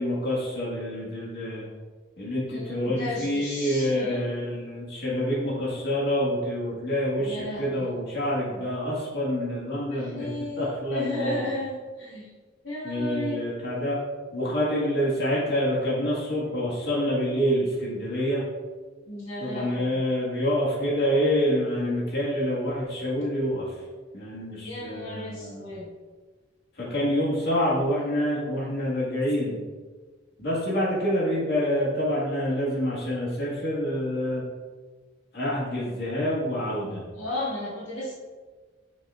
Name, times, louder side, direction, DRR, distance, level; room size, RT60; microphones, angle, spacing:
voice 1, 0.0-1.7 2.2-10.3 10.6-11.4 12.8-14.0 14.3-18.4 19.4-23.7 24.1-25.7 26.8-29.6 30.4-34.4 35.3-37.0, equal, 60° left, -7 dB, 2.0 m, -27 dB
voice 2, 2.5-4.2 7.2-7.9 9.9-12.3 12.6-13.4 19.1-20.0 24.6-25.9 37.1-38.1, left 1 dB, 75° left, -7 dB, 2.0 m, -34 dB
7.3 x 6.0 x 2.5 m, 1.4 s
head